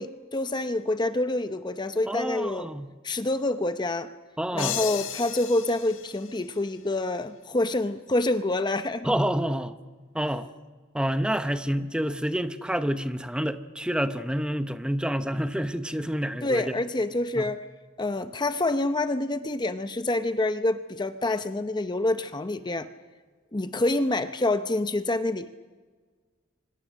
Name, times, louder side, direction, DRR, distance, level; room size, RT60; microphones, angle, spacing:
voice 1, 0.0-2.7 3.0-4.1 4.5-9.1 16.4-17.7 18.0-22.9 23.5-25.5, left 2 dB, 25° left, 0.7 m, -27 dB
voice 2, 2.1-2.9 4.4-4.8 9.0-9.7 10.1-10.5 10.9-16.8 17.4-17.5, equal, 5° right, 0.8 m, -28 dB
sound 1, 4.6-7.2, left 10 dB, 90° left, 1.6 m, -35 dB
26.5 x 25.0 x 6.4 m
head